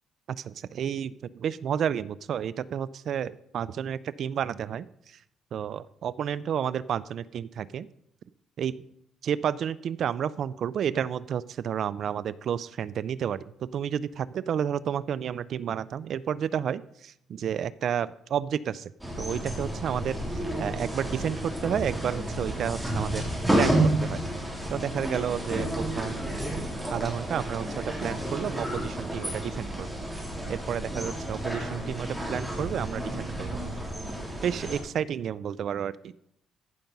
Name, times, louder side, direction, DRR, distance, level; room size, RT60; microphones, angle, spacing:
voice 1, 0.4-5.2 5.5-7.9 8.6-8.7 9.2-13.4 13.7-18.9 19.2-20.2 20.6-23.2 23.5-23.7 24.0-24.2 24.7-26.3 26.9-29.9 30.5-33.6 34.4-36.1, right 8 dB, 55° right, 18 dB, 0.3 m, -31 dB
sound 1, 19.0-34.8, right 1 dB, 5° right, 3.1 m, -31 dB
14.5 x 5.8 x 5.3 m, 0.76 s
cardioid pair, 140°, 0 cm